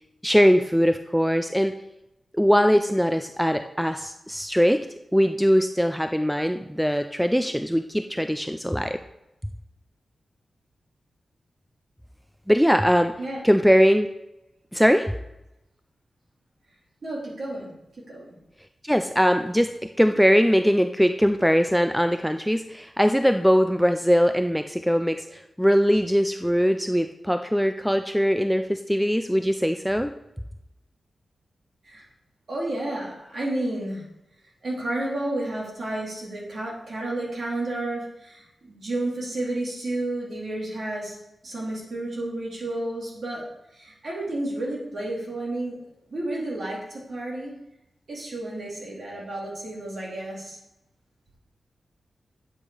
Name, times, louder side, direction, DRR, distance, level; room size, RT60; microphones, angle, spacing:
voice 1, 0.2-1.7 2.3-4.8 5.1-9.0 12.5-13.1 13.4-14.1 14.7-15.1 18.8-30.1, equal, ahead, 7 dB, 0.3 m, -21 dB
voice 2, 17.0-17.7 18.1-18.3 31.8-32.0 32.5-34.0 34.6-41.2 41.4-43.5 43.7-45.8 46.1-47.5 48.1-50.6, right 1 dB, 45° right, -4 dB, 3.3 m, -31 dB
9.0 x 8.0 x 4.9 m, 0.90 s
wide cardioid pair, 170°, 0 cm